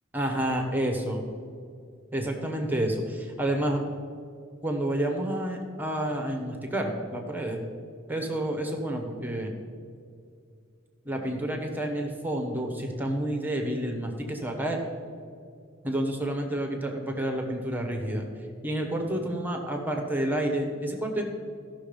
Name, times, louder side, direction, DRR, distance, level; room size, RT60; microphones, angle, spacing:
voice 1, 0.1-1.2 2.1-3.8 4.6-7.6 8.1-9.5 11.0-14.8 15.8-18.2 18.6-21.2, right 1 dB, 10° right, 3 dB, 0.9 m, -29 dB
14.5 x 6.1 x 5.1 m, 2.4 s
head